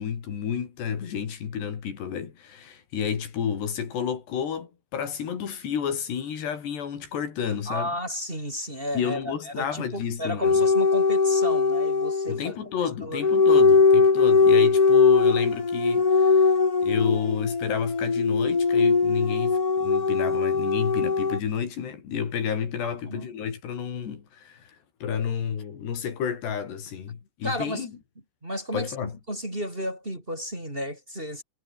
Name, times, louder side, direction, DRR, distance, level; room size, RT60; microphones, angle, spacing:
voice 1, 0.0-7.9 9.0-10.6 12.3-16.6 16.8-24.6 25.0-27.9 28.7-29.1, left 7 dB, 75° left, 5.6 m, -31 dB
voice 2, 7.5-13.3 22.8-23.3 27.4-27.9 28.4-31.4, equal, 10° right, 4.7 m, -33 dB
sound 1, 10.4-12.4 13.2-21.4, left 4 dB, 25° left, 2.3 m, -20 dB
omnidirectional pair, 4.8 m